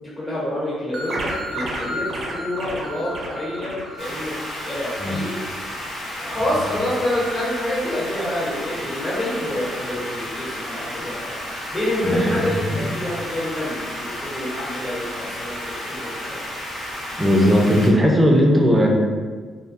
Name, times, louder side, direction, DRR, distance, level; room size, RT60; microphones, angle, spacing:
voice 1, 0.0-5.4 6.2-11.4 11.7-16.4, left 1 dB, 30° left, -7 dB, 1.2 m, -27 dB
sound 1, 0.9-5.3, right 1 dB, 60° right, 0.5 m, -31 dB
sound 2, 4.0-17.9, equal, 90° left, 0.9 m, -32 dB
voice 2, 12.0-12.9 17.2-18.9, equal, 15° right, 0 dB, 0.5 m, -17 dB
2.7 x 2.2 x 2.6 m, 1.5 s
cardioid pair, 85°, 0 cm